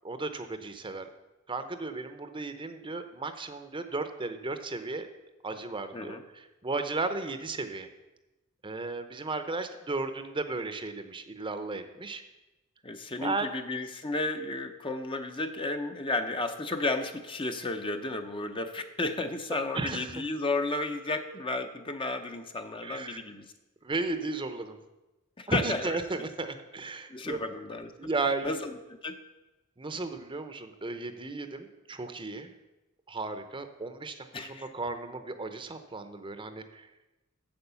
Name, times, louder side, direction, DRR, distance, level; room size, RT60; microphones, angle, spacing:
voice 1, 0.0-1.1 1.5-5.1 5.4-7.9 8.6-12.2 13.2-13.5 19.7-20.1 22.8-23.2 23.8-24.8 25.5-27.4 28.0-28.5 29.8-32.5 33.1-36.9, right 3 dB, 25° right, 9 dB, 0.7 m, -34 dB
voice 2, 5.9-6.2 12.8-23.5 25.4-26.0 27.1-28.1 28.4-29.2 34.3-34.7, left 2 dB, 25° left, 6 dB, 0.7 m, -33 dB
8.8 x 7.6 x 6.9 m, 1.0 s
head